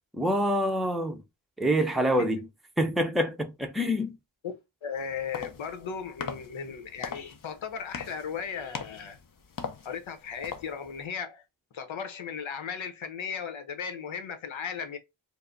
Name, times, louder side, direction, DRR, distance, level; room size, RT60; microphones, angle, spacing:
voice 1, 0.1-1.2 1.6-2.5 2.8-4.2, equal, ahead, 0.6 m, -26 dB
voice 2, 4.8-9.2 9.8-11.4 11.7-15.0, left 6 dB, 70° left, 0.9 m, -36 dB
sound 1, 5.0-11.1, left 6 dB, 45° left, 0.7 m, -41 dB
4.6 x 2.1 x 2.6 m
cardioid pair, 80°, 48 cm